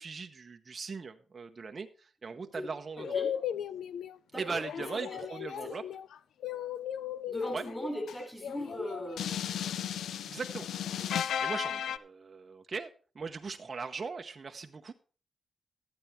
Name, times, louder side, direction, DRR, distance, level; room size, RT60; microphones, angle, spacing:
voice 1, 0.0-3.2 4.3-5.8 7.5-7.7 10.2-10.7 11.3-12.9 13.1-14.9, right 4 dB, 40° right, 5 dB, 0.8 m, -39 dB
voice 2, 2.4-2.7 3.0-3.3 4.3-4.6 5.1-5.2 5.6-5.7 7.3-9.4, left 1 dB, 5° left, 3 dB, 3.9 m, -38 dB
cat show, 3.0-4.2 4.6-12.0, left 9 dB, 85° left, 0.4 m, -36 dB
12.5 x 8.9 x 4.4 m, 0.38 s
cardioid pair, 85°, 0 cm